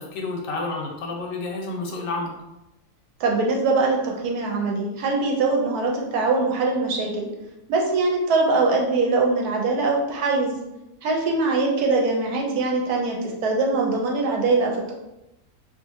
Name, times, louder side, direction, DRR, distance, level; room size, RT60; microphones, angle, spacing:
voice 1, 0.0-2.3, left 3 dB, 70° left, 0 dB, 0.9 m, -30 dB
voice 2, 3.2-7.3 7.7-10.5 11.0-14.9, right 3 dB, 80° right, 0 dB, 1.1 m, -22 dB
2.5 x 2.5 x 2.7 m, 0.92 s
omnidirectional pair, 1.7 m